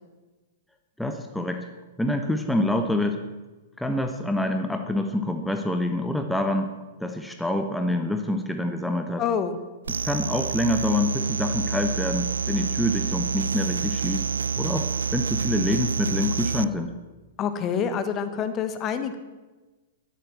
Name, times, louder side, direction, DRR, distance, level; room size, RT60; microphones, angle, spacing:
voice 1, 1.0-1.7 2.0-3.2 3.8-6.7 7.0-9.2 9.9-14.2 14.6-14.9 15.1-16.9, left 1 dB, 5° left, 6 dB, 1.1 m, -26 dB
voice 2, 9.2-9.6 17.4-19.2, left 7 dB, 30° left, 10 dB, 1.4 m, -27 dB
sound 1, 9.9-16.6, right 5 dB, 75° right, 0.4 m, -28 dB
12.5 x 11.5 x 7.5 m, 1.2 s
figure-of-eight pair, 105°, 0 cm